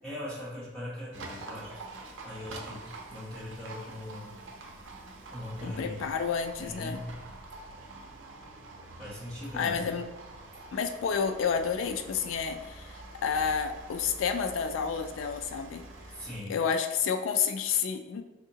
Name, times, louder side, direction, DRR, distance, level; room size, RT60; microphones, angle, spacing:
voice 1, 0.0-1.8 2.2-2.8 3.1-4.3 5.3-6.0 6.6-7.1 9.0-9.9 16.1-16.6, left 1 dB, 5° left, -12 dB, 1.4 m, -40 dB
Livestock farm animals working animals, 1.1-16.4, right 2 dB, 80° right, 0.5 m, -46 dB
voice 2, 5.6-7.0 9.5-10.1 10.7-15.8 16.5-18.2, left 6 dB, 85° left, 7 dB, 0.3 m, -30 dB
3.5 x 2.8 x 2.8 m, 1.1 s
head